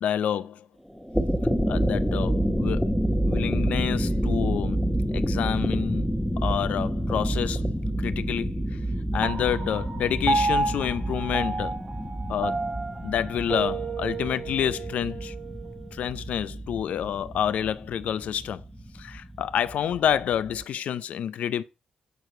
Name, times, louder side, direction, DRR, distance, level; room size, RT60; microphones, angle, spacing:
voice 1, 0.0-0.7 1.7-3.0 3.2-7.7 8.0-8.8 9.1-11.8 12.3-12.7 13.0-15.3 15.9-18.6 18.9-21.6, left 9 dB, 75° left, 0.5 m, -28 dB
sound 1, 1.0-20.6, equal, 5° left, 0.9 m, -28 dB
Piano, 9.2-15.9, right 3 dB, 30° right, 0.9 m, -31 dB
8.3 x 4.6 x 3.8 m
supercardioid pair, 60°, 2 cm